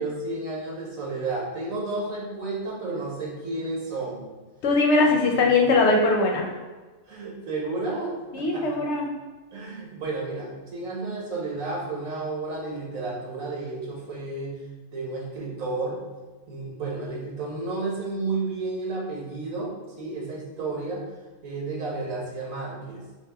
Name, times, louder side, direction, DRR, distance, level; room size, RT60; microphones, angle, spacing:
voice 1, 0.0-4.3 5.4-5.5 7.1-8.8 9.5-14.6 14.9-16.0 16.5-21.1 21.4-23.0, right 3 dB, 90° right, -3 dB, 1.5 m, -32 dB
voice 2, 4.6-6.5 8.3-9.1, left 3 dB, 65° left, 1 dB, 0.8 m, -20 dB
3.4 x 2.9 x 3.4 m, 1.3 s
omnidirectional pair, 1.4 m